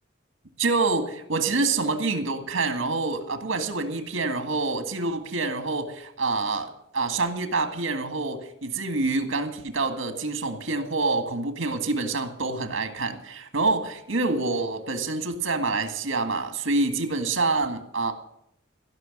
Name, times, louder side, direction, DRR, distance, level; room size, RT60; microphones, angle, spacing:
voice 1, 0.6-18.1, right 3 dB, 80° right, 7 dB, 1.9 m, -27 dB
16.0 x 6.0 x 9.9 m, 0.77 s
head